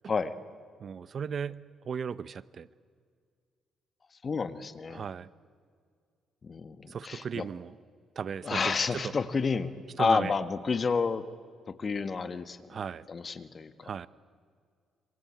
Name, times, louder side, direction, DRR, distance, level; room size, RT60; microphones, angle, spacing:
voice 1, 0.8-2.7 4.9-5.3 6.9-7.8 8.2-9.1 10.0-10.3 12.7-13.1 13.8-14.1, right 7 dB, 50° right, 18 dB, 0.7 m, -36 dB
voice 2, 4.2-5.0 6.4-7.5 8.4-9.7 10.0-11.2 11.7-12.6 13.1-13.9, left 5 dB, 40° left, 11 dB, 1.5 m, -30 dB
26.5 x 25.0 x 8.7 m, 2.1 s
cardioid pair, 90°, 0 cm